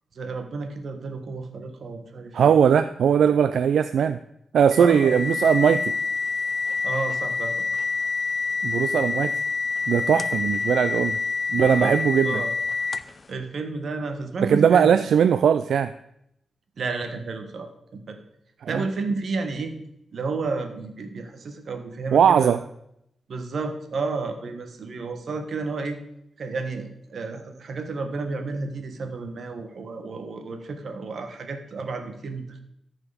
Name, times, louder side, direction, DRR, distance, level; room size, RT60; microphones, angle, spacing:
voice 1, 0.1-2.5 4.8-5.2 6.8-7.5 11.5-11.9 12.2-12.5 13.3-14.9 16.8-18.2 18.7-19.7 20.1-22.6 23.3-26.0 26.4-32.6, right 3 dB, 65° right, 6 dB, 1.4 m, -31 dB
voice 2, 2.3-4.2 4.5-5.9 8.6-9.4 9.9-11.2 11.5-12.4 14.4-15.9 18.7-18.8 22.1-22.6, right 7 dB, 85° right, 11 dB, 0.3 m, -19 dB
sound 1, 4.7-13.2, left 4 dB, 35° left, 0.5 m, -27 dB
13.5 x 4.9 x 5.0 m, 0.77 s
wide cardioid pair, 105°, 0 cm